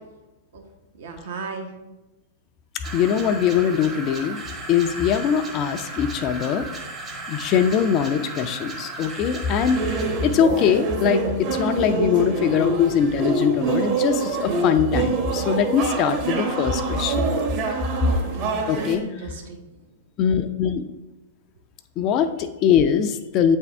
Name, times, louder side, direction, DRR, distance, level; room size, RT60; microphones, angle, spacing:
voice 1, 1.0-1.7 17.8-19.6, right 4 dB, 65° right, 2 dB, 1.1 m, -36 dB
sound 1, 2.8-10.5, right 2 dB, 25° right, 1.0 m, -36 dB
voice 2, 2.9-4.4 4.7-6.7 7.3-9.8 10.2-11.2 11.6-17.3 18.7-19.0 20.2-20.8 22.0-23.6, left 8 dB, 35° left, 8 dB, 0.4 m, -21 dB
sound 2, 9.7-19.0, right 3 dB, 40° right, 1.2 m, -26 dB
8.1 x 3.5 x 3.4 m, 1.1 s
figure-of-eight pair, 100°, 0 cm